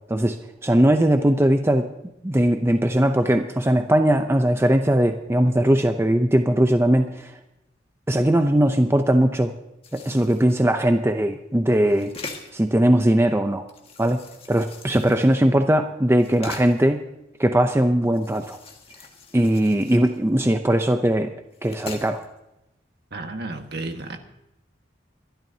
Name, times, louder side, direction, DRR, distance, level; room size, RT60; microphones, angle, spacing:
voice 1, 0.6-1.9 2.2-7.3 8.1-9.5 9.9-12.1 12.5-13.6 14.0-14.2 14.5-17.0 17.4-18.6 19.3-21.3 21.6-22.2, right 1 dB, 15° right, 6 dB, 0.6 m, -19 dB
sound 1, 9.8-10.7 11.7-12.7 13.7-15.6 16.1-16.9 18.0-20.6 21.0-21.1 21.5-22.3, left 3 dB, 30° left, 1.7 m, -41 dB
voice 2, 23.1-24.2, right 2 dB, 55° right, 5 dB, 1.6 m, -32 dB
24.5 x 12.5 x 2.8 m, 0.90 s
head